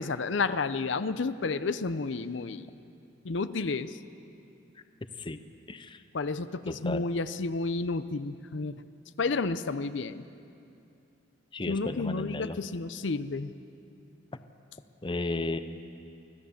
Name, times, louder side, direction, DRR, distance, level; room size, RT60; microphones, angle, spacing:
voice 1, 0.0-2.7 3.2-3.9 6.1-8.7 9.2-10.2 11.7-13.5, left 3 dB, 75° left, 13 dB, 0.6 m, -31 dB
voice 2, 6.7-7.0 11.5-12.6 15.0-15.6, left 2 dB, 25° left, 10 dB, 0.7 m, -33 dB
24.5 x 16.5 x 7.2 m, 2.7 s
head